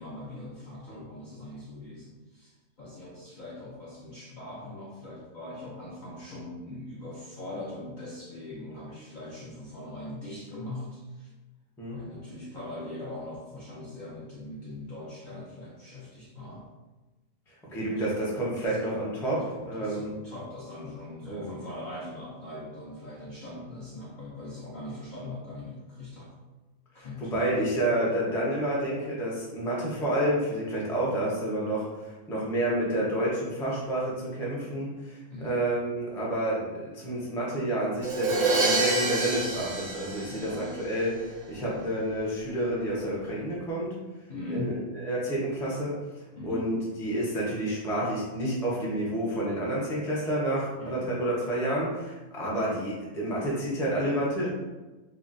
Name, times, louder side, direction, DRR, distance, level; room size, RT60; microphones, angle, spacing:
voice 1, 0.0-2.5 2.8-11.3 11.9-16.7 18.0-18.1 19.3-26.3 26.9-27.6 35.3-35.6 40.3-41.0 41.6-41.8 44.3-44.9 46.4-46.7 50.8-51.1, left 1 dB, 55° left, -6 dB, 0.5 m, -41 dB
voice 2, 17.7-20.1 21.3-21.5 26.9-43.9 44.5-44.8 45.0-45.9 46.4-54.5, right 1 dB, 5° left, -6 dB, 0.3 m, -29 dB
Crash cymbal, 38.0-41.0, right 3 dB, 60° right, 0.6 m, -27 dB
3.6 x 2.0 x 2.5 m, 1.2 s
omnidirectional pair, 1.3 m